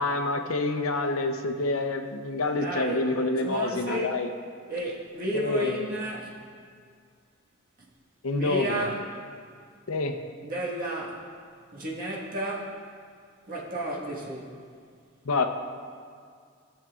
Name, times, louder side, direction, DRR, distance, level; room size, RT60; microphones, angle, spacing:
voice 1, 0.0-4.3 5.4-5.8 8.2-8.8 9.9-10.2 15.2-15.5, left 2 dB, 85° left, 6 dB, 0.7 m, -27 dB
voice 2, 2.6-3.0 3.4-4.1 4.7-6.4 8.3-9.0 10.4-11.2 11.7-12.8 13.5-14.5, right 1 dB, 40° right, -4 dB, 1.5 m, -32 dB
15.0 x 7.3 x 2.4 m, 2.1 s
head